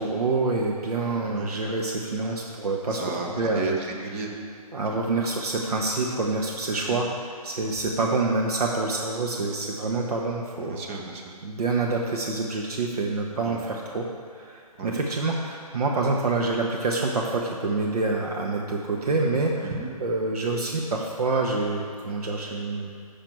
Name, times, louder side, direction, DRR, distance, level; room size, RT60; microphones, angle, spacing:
voice 1, 0.0-3.6 4.7-10.8 11.4-14.0 14.3-19.7 20.0-22.9, right 3 dB, 85° right, 0 dB, 0.9 m, -27 dB
voice 2, 2.9-4.3 6.9-7.0 10.6-11.3 13.4-13.6 14.8-14.9 19.6-19.9, right 3 dB, 20° right, 0 dB, 0.8 m, -33 dB
7.5 x 6.8 x 4.5 m, 2.2 s
hypercardioid pair, 160°, 19 cm